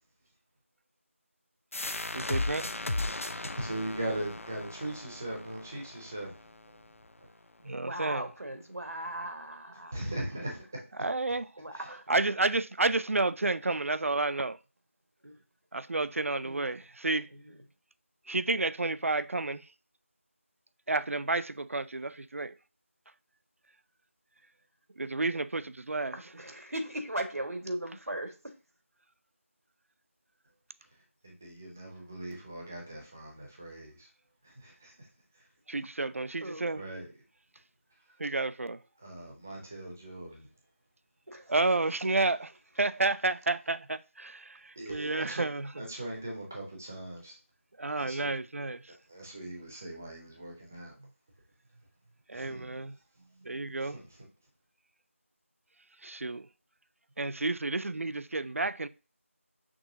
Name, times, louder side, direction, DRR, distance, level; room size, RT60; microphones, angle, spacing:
sound 1, 1.7-7.1, left 2 dB, 70° left, 0.5 m, -36 dB
voice 1, 2.1-2.7 7.7-8.2 11.0-11.4 12.1-14.6 15.7-17.3 18.3-19.6 20.9-22.5 25.0-26.1 35.7-36.8 38.2-38.8 41.5-42.5 42.8-44.4 44.9-45.7 47.8-48.8 52.3-52.9 53.5-54.0 56.0-56.4 57.2-58.9, right 2 dB, 70° right, 0.4 m, -30 dB
voice 2, 3.4-6.8 9.9-10.8 11.7-11.9 31.2-34.1 34.4-35.1 35.3-35.5 36.7-37.1 39.0-40.5 44.8-45.5 45.8-47.4 48.0-48.3 49.1-51.0 52.3-52.8 53.8-54.3, right 1 dB, 10° right, 0.5 m, -40 dB
voice 3, 7.8-10.0 11.6-12.2 15.2-15.3 16.4-16.9 17.3-17.6 26.1-28.5 36.4-36.7 41.3-41.6, right 1 dB, 90° right, 1.2 m, -38 dB
6.1 x 3.0 x 2.6 m
figure-of-eight pair, 170°, 8 cm